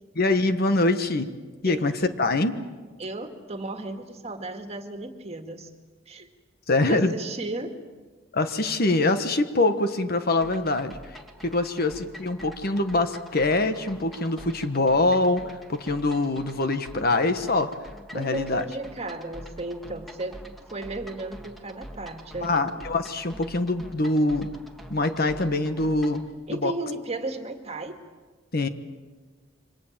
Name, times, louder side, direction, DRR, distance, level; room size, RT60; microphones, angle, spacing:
voice 1, 0.2-1.3 1.6-2.6 6.7-7.1 8.3-11.0 11.4-15.4 15.7-17.7 18.1-18.6 22.4-24.5 24.9-26.2 26.5-26.7 28.5-28.7, left 2 dB, 50° left, 9 dB, 1.3 m, -24 dB
voice 2, 3.0-5.7 6.1-6.3 6.9-7.8 18.1-20.5 20.7-22.7 26.5-28.0, right 2 dB, 35° right, 5 dB, 2.1 m, -34 dB
sound 1, 10.4-26.3, right 1 dB, ahead, 1.9 m, -46 dB
27.5 x 25.0 x 7.5 m, 1.4 s
head